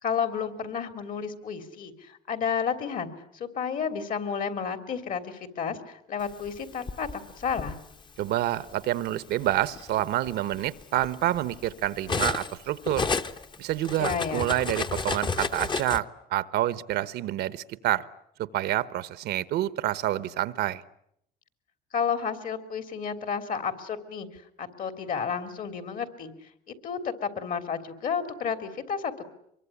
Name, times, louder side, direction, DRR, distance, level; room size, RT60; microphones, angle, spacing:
voice 1, 0.0-7.8 14.0-14.5 21.9-26.3 26.7-29.3, left 6 dB, 55° left, 10 dB, 3.3 m, -31 dB
Cutlery silverware, 6.5-7.7 8.7-8.9 9.3-12.6 12.8-16.0, left 4 dB, 30° left, 1.2 m, -32 dB
voice 2, 8.2-13.1 13.6-18.0 18.4-20.8, right 14 dB, 75° right, 16 dB, 1.1 m, -28 dB
24.5 x 22.5 x 9.9 m, 0.73 s
cardioid pair, 110°, 17 cm